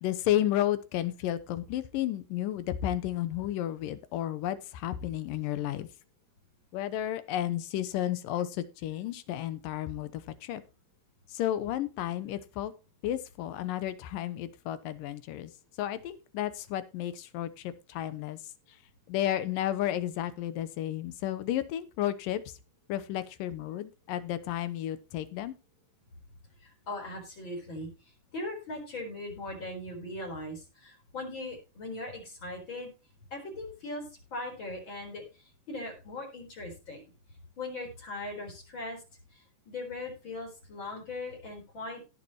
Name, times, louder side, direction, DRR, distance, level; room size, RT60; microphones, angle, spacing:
voice 1, 0.0-5.9 6.7-10.6 11.3-12.7 13.0-15.5 15.8-18.4 19.1-22.4 22.9-25.5, left 12 dB, 80° left, 13 dB, 2.6 m, -32 dB
voice 2, 26.6-27.9 28.3-32.9 33.3-37.0 37.6-39.0 39.3-42.0, left 2 dB, 35° left, 2 dB, 4.9 m, -39 dB
17.5 x 7.0 x 3.0 m, 0.30 s
omnidirectional pair, 3.9 m